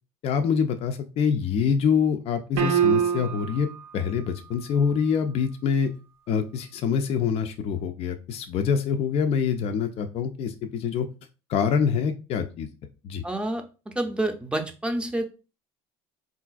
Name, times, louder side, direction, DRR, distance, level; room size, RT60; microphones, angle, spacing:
voice 1, 0.2-5.9 6.3-11.1 11.5-12.7 13.0-13.2, left 6 dB, 50° left, 7 dB, 0.4 m, -25 dB
sound 1, 2.6-3.6, right 8 dB, 85° right, 0.6 m, -23 dB
voice 2, 13.2-15.2, right 1 dB, 10° right, 6 dB, 0.6 m, -28 dB
3.6 x 2.4 x 2.4 m, 0.31 s
hypercardioid pair, 70°, 13 cm